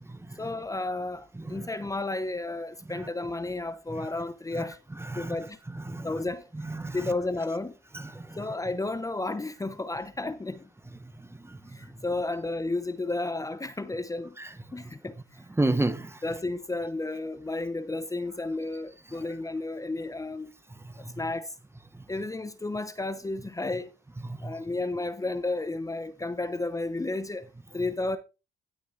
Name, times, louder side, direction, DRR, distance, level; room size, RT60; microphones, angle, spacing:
voice 1, 0.4-4.8 5.1-5.6 6.0-6.5 6.9-7.8 8.4-10.7 11.7-14.4 14.7-15.2 16.2-20.5 21.0-21.6 22.1-23.9 24.4-27.5 27.7-28.2, left 2 dB, 15° left, 0.9 m, -32 dB
voice 2, 11.2-11.6 14.4-14.5 15.6-16.2 21.0-21.1 24.3-24.5, right 2 dB, 10° right, 1.1 m, -30 dB
16.5 x 6.3 x 3.2 m
cardioid pair, 90°, 20 cm